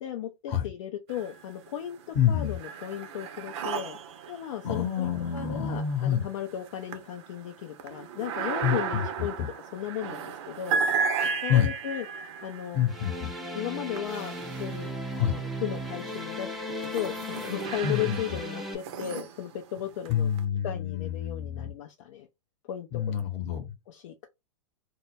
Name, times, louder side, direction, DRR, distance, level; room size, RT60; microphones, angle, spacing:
voice 1, 0.0-4.0 4.3-9.3 9.7-10.8 11.4-12.0 12.4-12.9 13.5-14.3 14.6-14.9 15.3-16.5 16.8-20.3 20.6-22.3 22.7-23.1 23.9-24.3, left 10 dB, 60° left, 0.4 m, -35 dB
sound 1, 1.1-1.8 2.1-15.3 15.9-20.4, right 6 dB, 55° right, 0.6 m, -35 dB
voice 2, 2.1-2.6 4.6-6.3 8.6-9.5 11.5-11.7 12.7-13.3 15.1-15.4 17.8-18.4 20.1-21.7 22.9-23.7, left 9 dB, 40° left, 0.9 m, -27 dB
sound 2, 12.9-18.8, equal, ahead, 0.5 m, -36 dB
2.2 x 2.0 x 3.1 m
hypercardioid pair, 115°, 17 cm